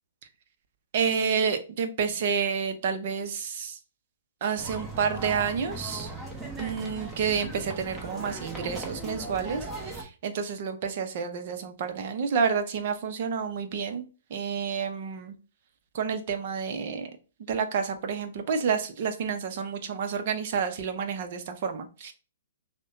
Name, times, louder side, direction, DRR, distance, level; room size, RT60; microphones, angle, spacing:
voice 1, 0.9-3.8 4.4-6.1 6.6-15.3 15.9-17.1 17.5-22.1, right 6 dB, 50° right, 8 dB, 0.7 m, -29 dB
sound 1, 4.6-10.0, right 2 dB, 10° right, 1.0 m, -38 dB
6.3 x 2.2 x 2.6 m, 0.34 s
figure-of-eight pair, 120°, 0 cm